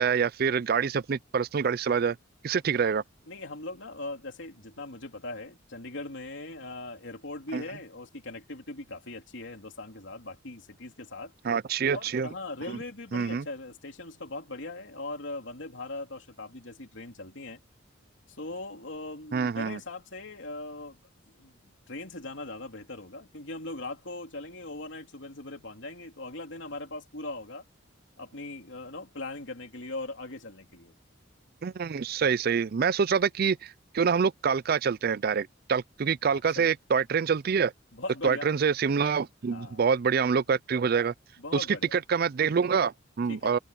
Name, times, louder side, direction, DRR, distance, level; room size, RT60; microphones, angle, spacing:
voice 1, 0.0-2.2 2.4-3.0 7.5-7.6 11.4-12.3 13.1-13.4 19.3-19.8 31.6-37.7 38.2-41.1 41.5-41.7 41.9-43.6, right 6 dB, 50° right, 0.4 m, -26 dB
voice 2, 3.3-11.3 11.9-17.6 18.3-21.0 21.4-21.5 21.9-27.6 28.2-30.9 36.3-36.7 37.9-38.5 39.5-39.8 41.4-41.9 43.3-43.5, left 2 dB, 70° left, 3.1 m, -40 dB
head